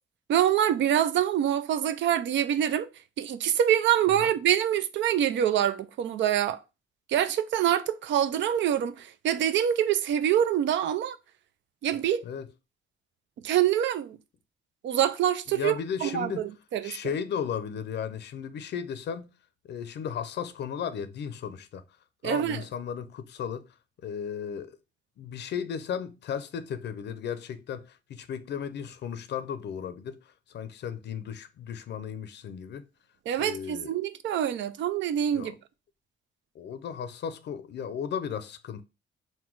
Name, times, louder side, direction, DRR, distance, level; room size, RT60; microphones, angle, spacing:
voice 1, 0.3-2.9 3.2-6.6 7.1-11.2 11.8-12.3 13.4-14.2 14.8-15.7 16.0-16.3 16.7-16.9 22.2-22.6 33.3-35.5, right 10 dB, 70° right, 0.5 m, -25 dB
voice 2, 15.5-16.5 16.8-19.3 19.6-21.8 22.2-23.7 24.0-24.8 25.2-32.9 33.4-33.9 35.3-35.5 36.5-38.8, left 7 dB, 60° left, 0.5 m, -35 dB
3.9 x 2.2 x 4.5 m
cardioid pair, 90°, 20 cm